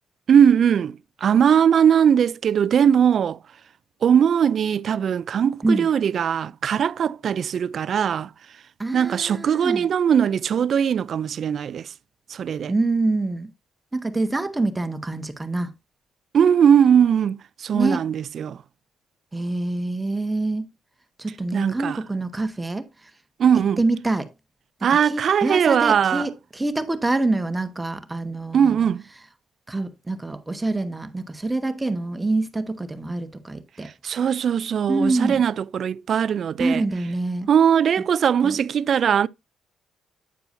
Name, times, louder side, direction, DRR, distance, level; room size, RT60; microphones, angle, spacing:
voice 1, 0.3-3.4 4.0-8.3 8.9-11.9 12.3-12.7 16.3-18.6 21.5-22.0 23.4-23.8 24.8-26.3 28.5-29.0 34.0-36.8 37.5-39.3, right 8 dB, 55° right, 0.3 m, -20 dB
voice 2, 8.8-9.8 12.7-13.5 13.9-15.7 17.7-18.0 19.3-20.7 21.2-22.9 23.8-24.3 25.0-28.8 29.7-33.9 34.9-35.4 36.6-37.5 38.4-38.5, right 2 dB, 15° right, 1.1 m, -25 dB
9.4 x 6.8 x 2.6 m
cardioid pair, 90°, 0 cm